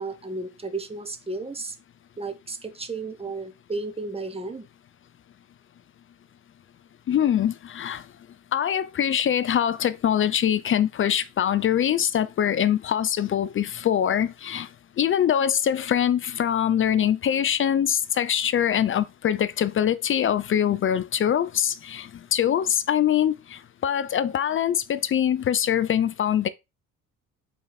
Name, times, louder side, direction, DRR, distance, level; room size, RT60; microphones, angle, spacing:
voice 1, 0.0-1.7 2.2-4.6, right 3 dB, 15° right, 1.2 m, -33 dB
voice 2, 7.1-8.0 8.5-14.7 15.0-26.5, left 9 dB, 30° left, 0.5 m, -23 dB
5.8 x 4.1 x 4.2 m
figure-of-eight pair, 50°, 41 cm